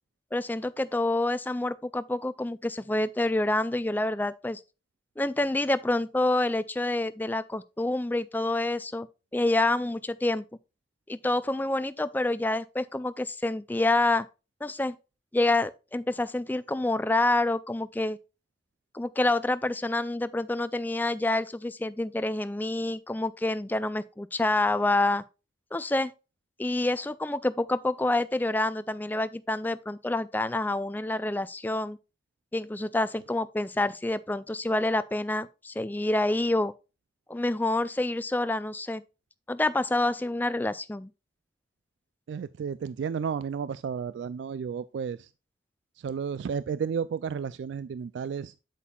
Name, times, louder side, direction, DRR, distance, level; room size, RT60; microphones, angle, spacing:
voice 1, 0.3-4.6 5.2-9.1 9.3-10.4 11.1-14.3 14.6-15.0 15.3-18.2 18.9-25.2 25.7-26.1 26.6-32.0 32.5-36.7 37.3-39.0 39.5-41.1, left 2 dB, 10° left, 0.3 m, -27 dB
voice 2, 42.3-45.3 46.0-48.7, right 6 dB, 80° right, 0.3 m, -32 dB
8.2 x 7.5 x 2.3 m
head